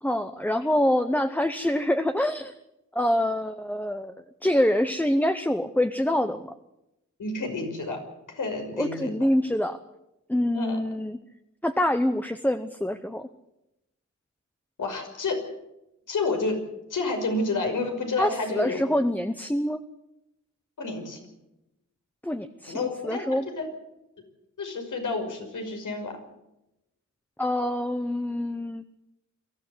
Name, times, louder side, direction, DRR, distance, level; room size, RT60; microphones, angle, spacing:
voice 1, 0.0-2.5 2.9-4.1 4.4-6.5 8.8-9.8 10.3-11.2 11.6-13.3 18.2-19.8 22.2-23.4 27.4-28.8, left 1 dB, 5° left, 8 dB, 0.9 m, -25 dB
voice 2, 7.2-8.0 8.3-9.1 10.5-10.8 14.8-15.4 16.1-16.6 16.9-18.8 20.8-21.2 22.7-23.7 24.6-26.2, left 3 dB, 85° left, 4 dB, 5.7 m, -29 dB
23.0 x 16.0 x 8.0 m, 0.89 s
wide cardioid pair, 135°, 30 cm